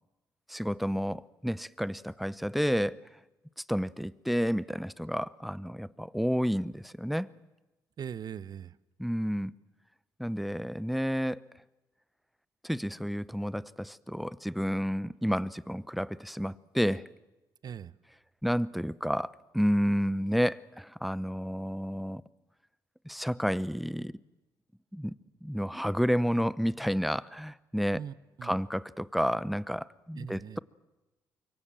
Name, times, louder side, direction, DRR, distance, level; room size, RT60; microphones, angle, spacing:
voice 1, 0.5-3.0 3.7-7.3 9.0-9.5 10.2-11.5 12.6-17.1 18.4-22.2 23.0-24.1 24.9-28.0 28.4-30.6, equal, ahead, 0.7 m, -30 dB
voice 2, 8.0-8.8 17.6-17.9 27.9-28.6 30.1-30.6, right 8 dB, 50° right, 0.8 m, -41 dB
25.5 x 23.0 x 7.6 m
supercardioid pair, 70°, 8 cm